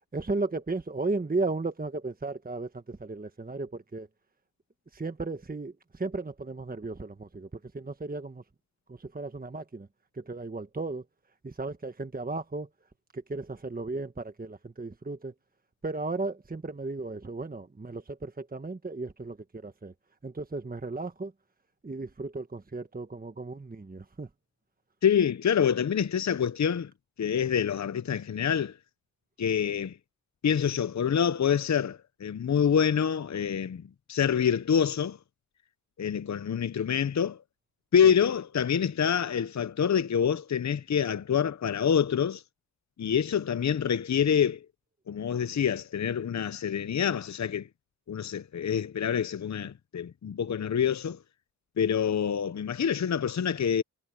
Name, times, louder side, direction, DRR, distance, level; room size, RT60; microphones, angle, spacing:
voice 1, 0.1-4.1 4.9-7.5 7.7-8.4 8.9-9.9 10.1-11.0 11.4-12.7 13.1-15.3 15.8-19.9 20.2-21.3 21.8-24.3 38.0-38.1, right 3 dB, 25° right, 1.4 m, -35 dB
voice 2, 25.0-26.9 27.2-28.8 29.4-30.0 30.4-35.2 36.0-37.4 37.9-42.4 43.0-44.7 45.1-47.7 48.1-51.2 51.8-53.8, left 8 dB, 50° left, 0.8 m, -26 dB
cardioid pair, 50°, 37 cm